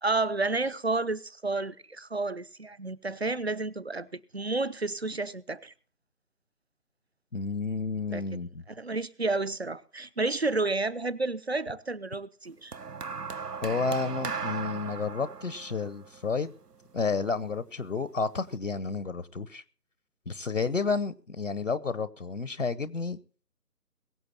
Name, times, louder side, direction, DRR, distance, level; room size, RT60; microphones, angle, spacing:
voice 1, 0.0-5.7 8.1-8.2 8.7-12.8, right 3 dB, 40° right, 0.7 m, -31 dB
voice 2, 7.3-8.6 13.6-16.5 16.9-19.6 20.3-23.2, left 4 dB, 55° left, 0.8 m, -31 dB
sound 1, 12.7-17.1 18.1-18.3, right 5 dB, 80° right, 1.0 m, -37 dB
21.5 x 7.9 x 4.1 m
figure-of-eight pair, 155°, 47 cm